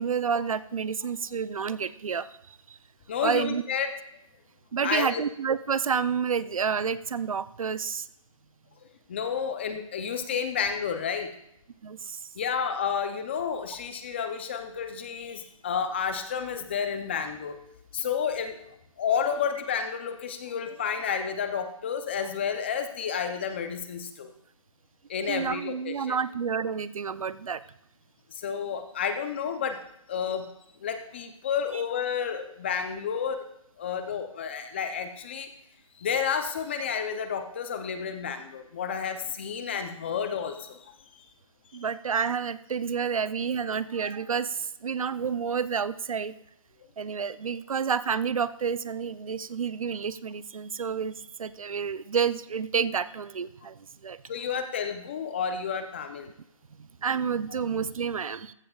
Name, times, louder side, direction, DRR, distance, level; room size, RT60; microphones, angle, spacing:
voice 1, 0.0-2.6 3.2-3.6 4.7-8.1 11.8-12.2 25.3-27.6 41.7-46.3 47.0-53.7 54.0-54.2 56.8-58.5, right 6 dB, 85° right, 15 dB, 0.6 m, -29 dB
voice 2, 3.1-3.9 4.8-5.2 9.1-11.3 12.4-17.6 17.9-18.7 19.0-24.3 25.1-26.2 28.3-29.8 30.1-30.5 30.8-33.5 33.8-35.5 36.0-41.2 54.3-56.3, left 7 dB, 20° left, 8 dB, 0.6 m, -31 dB
15.0 x 12.0 x 2.4 m, 0.75 s
hypercardioid pair, 170°, 17 cm